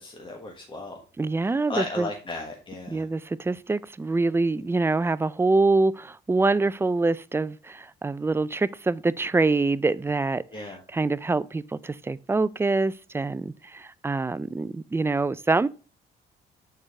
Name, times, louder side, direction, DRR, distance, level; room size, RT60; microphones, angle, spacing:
voice 1, 0.0-1.0 1.7-3.0 10.5-10.8, left 2 dB, 25° left, 1.4 m, -35 dB
voice 2, 1.2-2.1 2.9-10.6 10.9-15.7, right 3 dB, 10° right, 0.3 m, -25 dB
6.5 x 4.6 x 3.6 m
cardioid pair, 90°, 20 cm